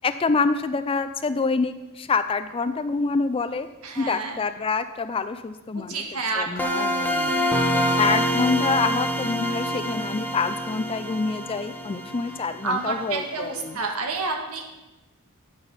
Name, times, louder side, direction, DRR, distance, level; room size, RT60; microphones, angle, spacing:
voice 1, 0.0-3.7 4.0-6.0 6.4-7.3 8.0-13.8, left 4 dB, 25° left, 11 dB, 0.4 m, -26 dB
voice 2, 3.8-4.4 5.7-7.1 7.3-8.3 12.3-12.4 12.6-14.6, right 3 dB, 80° right, 2 dB, 1.5 m, -30 dB
sound 1, 6.6-13.3, equal, 10° left, 0.8 m, -26 dB
8.9 x 5.9 x 5.5 m, 1.0 s
head